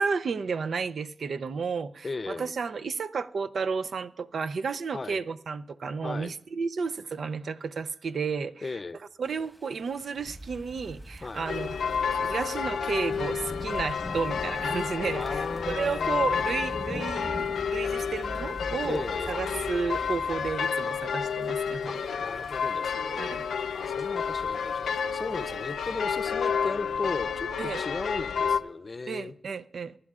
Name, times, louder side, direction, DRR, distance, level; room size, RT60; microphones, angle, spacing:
voice 1, 0.0-8.6 9.2-11.8 12.1-21.9 23.2-23.5 27.6-27.8 29.1-30.0, right 5 dB, 70° right, 0.5 m, -32 dB
voice 2, 2.0-2.5 4.9-5.2 6.0-6.3 8.6-9.0 11.2-11.5 15.1-17.1 18.8-19.4 21.8-23.4 23.7-29.3, left 3 dB, 40° left, 0.6 m, -37 dB
sound 1, 9.2-26.2, equal, ahead, 1.3 m, -47 dB
sound 2, 10.2-20.5, equal, 30° right, 1.6 m, -45 dB
sound 3, 11.5-28.6, left 6 dB, 85° left, 0.5 m, -30 dB
23.0 x 11.0 x 2.4 m
cardioid pair, 60°, 0 cm